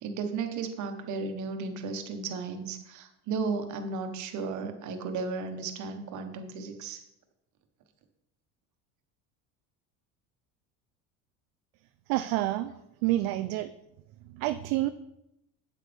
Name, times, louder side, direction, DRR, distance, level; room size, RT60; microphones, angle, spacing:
voice 1, 0.0-7.0, right 4 dB, 55° right, 6 dB, 1.3 m, -34 dB
voice 2, 12.1-12.7 13.0-13.7 14.2-14.9, right 15 dB, 70° right, 11 dB, 0.5 m, -28 dB
8.4 x 8.3 x 3.5 m, 0.86 s
supercardioid pair, 115°, 36 cm